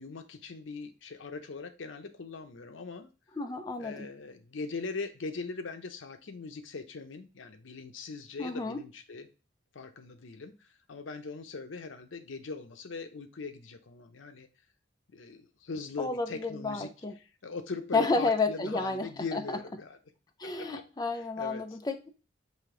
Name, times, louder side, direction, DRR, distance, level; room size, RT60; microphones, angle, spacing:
voice 1, 0.0-3.1 3.8-9.3 9.7-14.5 15.1-16.9 17.2-20.0 20.4-20.9 21.1-21.8, left 4 dB, 85° left, 8 dB, 0.7 m, -41 dB
voice 2, 3.4-4.1 8.4-8.8 16.0-17.1 17.9-19.4 20.4-22.1, left 3 dB, 20° left, 5 dB, 0.5 m, -31 dB
5.1 x 2.8 x 3.7 m, 0.32 s
head